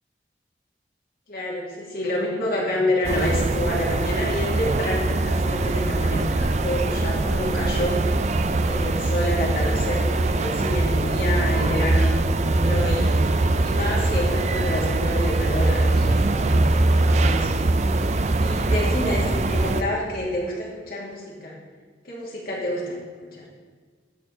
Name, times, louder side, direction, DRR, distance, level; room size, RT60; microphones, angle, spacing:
voice 1, 1.3-8.0 8.6-13.2 13.6-17.6 18.0-21.6 22.0-23.0 23.3-23.5, left 1 dB, 55° left, -3 dB, 2.6 m, -28 dB
sound 1, 3.0-19.8, right 2 dB, 40° right, 0.5 m, -22 dB
12.5 x 4.6 x 5.7 m, 1.5 s
head